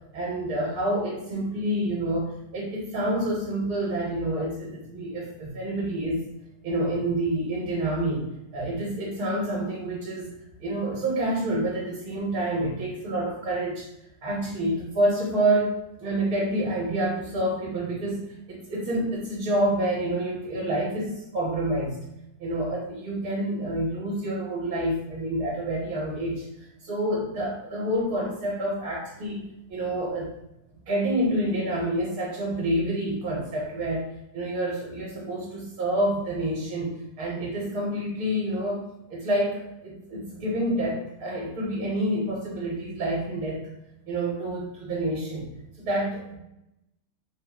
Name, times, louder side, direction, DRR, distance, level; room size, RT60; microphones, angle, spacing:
voice 1, 0.1-6.2 6.6-8.3 8.5-10.3 10.6-13.9 14.2-18.2 18.5-22.0 22.4-26.4 26.9-29.4 29.7-30.3 30.8-34.1 34.3-38.8 39.1-43.6 44.0-45.5 45.8-46.4, right 1 dB, 65° right, -5 dB, 1.3 m, -28 dB
3.4 x 2.0 x 3.5 m, 0.86 s
omnidirectional pair, 1.7 m